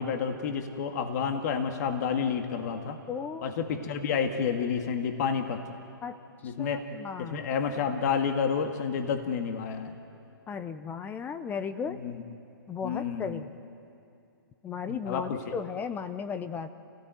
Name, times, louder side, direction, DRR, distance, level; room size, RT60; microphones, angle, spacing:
voice 1, 0.0-3.0 3.4-5.6 6.4-6.8 7.2-9.9 11.9-12.2 12.8-13.4 14.9-15.4, left 6 dB, 45° left, 5 dB, 2.0 m, -30 dB
voice 2, 3.1-3.5 6.0-6.2 6.4-7.5 10.5-12.0 12.7-13.5 14.6-16.7, left 6 dB, 15° left, 11 dB, 0.8 m, -35 dB
28.0 x 16.5 x 9.3 m, 2.6 s
hypercardioid pair, 145°, 12 cm